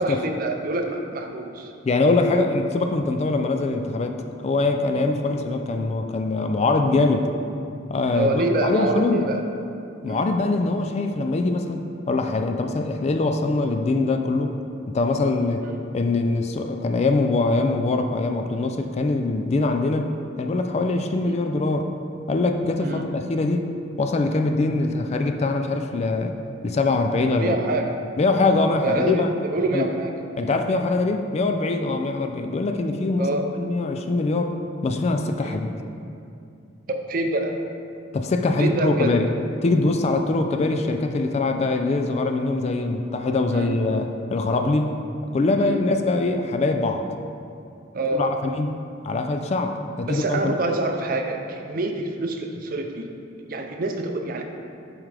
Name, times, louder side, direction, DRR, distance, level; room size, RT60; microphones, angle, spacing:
voice 1, 0.0-1.7 8.1-9.4 10.0-10.3 15.6-15.7 21.2-21.3 22.8-23.0 27.4-27.9 28.8-30.1 30.4-30.6 33.2-33.4 35.4-35.6 36.9-37.5 38.6-39.1 43.5-43.8 45.6-45.8 47.9-48.4 50.1-53.1 53.5-54.5, right 2 dB, 50° right, 4 dB, 0.5 m, -26 dB
voice 2, 1.8-4.2 4.4-7.3 7.9-9.2 10.0-14.6 14.9-15.7 15.9-20.1 20.4-21.9 22.3-23.7 24.0-26.3 26.6-27.6 28.2-29.3 29.7-29.9 30.4-34.5 34.8-35.7 38.1-39.3 39.6-44.9 45.3-47.0 48.1-48.8 49.0-50.5, left 3 dB, 35° left, 5 dB, 0.3 m, -23 dB
7.3 x 4.8 x 3.3 m, 2.5 s
head